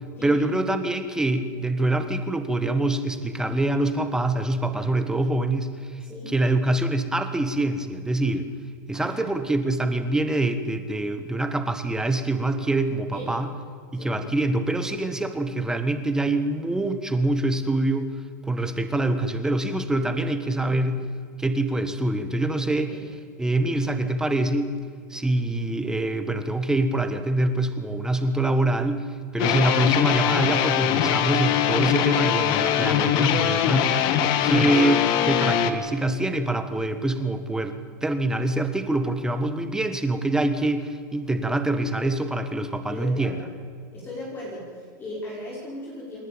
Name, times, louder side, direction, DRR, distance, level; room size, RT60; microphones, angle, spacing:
voice 1, 0.2-6.0 6.3-8.5 8.9-13.5 13.9-18.1 18.5-21.0 21.4-23.0 23.4-24.7 25.1-29.0 29.3-34.0 34.4-43.3, right 2 dB, 5° right, 9 dB, 1.5 m, -25 dB
voice 2, 6.0-6.3 8.9-9.4 13.1-13.3 13.9-14.2 20.6-20.7 22.9-23.0 29.4-29.7 32.7-33.1 42.9-43.5 43.9-46.3, left 1 dB, 20° left, -4 dB, 5.6 m, -37 dB
sound 1, 29.4-35.7, left 9 dB, 45° left, 1.8 m, -22 dB
27.5 x 11.0 x 8.9 m, 2.1 s
supercardioid pair, 135°, 10 cm